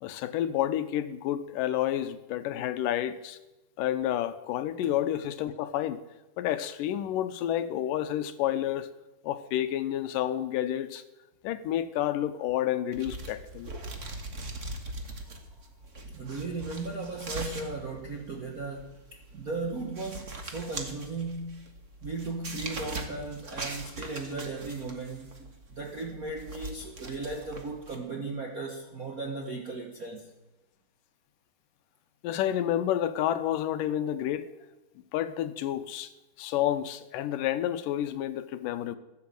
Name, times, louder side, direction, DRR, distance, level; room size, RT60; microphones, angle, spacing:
voice 1, 0.0-3.4 3.8-6.0 6.4-8.9 9.2-11.0 11.4-13.7 32.2-34.5 35.1-36.1 36.4-39.0, left 11 dB, 90° left, 2.5 m, -30 dB
sound 1, 12.9-28.0, right 2 dB, 35° right, 1.2 m, -41 dB
voice 2, 16.0-21.7 22.0-30.3, right 3 dB, 85° right, 0.7 m, -37 dB
14.5 x 11.0 x 7.7 m
omnidirectional pair, 3.7 m